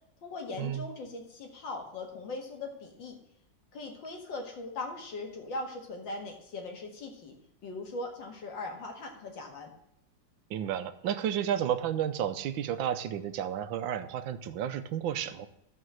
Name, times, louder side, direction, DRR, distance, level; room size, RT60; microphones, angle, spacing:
voice 1, 0.2-3.2 3.7-7.3 7.6-9.7, left 2 dB, 75° left, 2 dB, 2.5 m, -40 dB
voice 2, 10.5-15.5, right 10 dB, 90° right, 11 dB, 1.5 m, -32 dB
13.5 x 5.4 x 6.3 m, 0.77 s
omnidirectional pair, 2.1 m